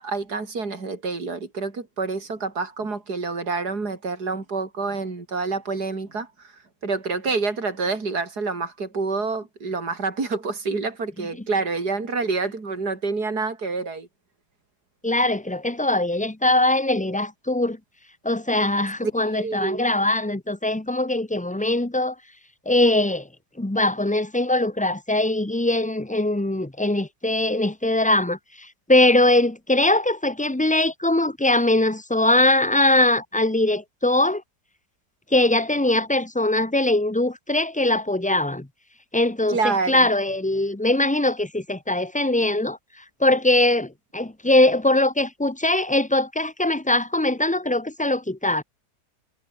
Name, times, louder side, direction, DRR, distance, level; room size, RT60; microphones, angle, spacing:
voice 1, 0.0-6.5 6.8-14.1 19.0-19.8 39.5-40.1, right 4 dB, 65° right, 4.5 m, -27 dB
voice 2, 15.0-17.8 18.2-22.1 22.7-23.3 23.6-34.4 35.3-38.7 39.1-42.8 43.2-48.6, left 1 dB, 10° left, 0.5 m, -21 dB
omnidirectional pair, 1.8 m